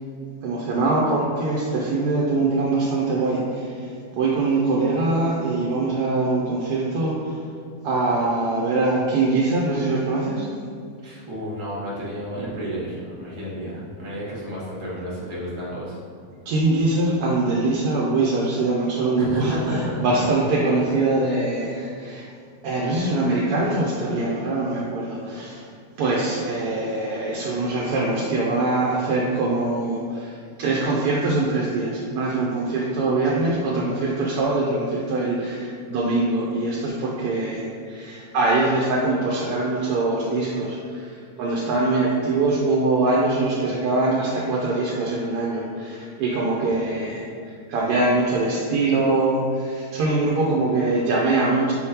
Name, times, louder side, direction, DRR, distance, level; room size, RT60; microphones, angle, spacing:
voice 1, 0.4-7.3 7.8-10.5 16.5-22.3 22.6-25.7 26.0-47.3 47.7-51.7, right 2 dB, 85° right, -4 dB, 1.1 m, -23 dB
voice 2, 11.0-16.0 19.2-20.3 33.3-33.6 46.6-46.9, equal, 25° right, -7 dB, 0.8 m, -31 dB
4.6 x 3.6 x 2.8 m, 2.3 s
omnidirectional pair, 1.6 m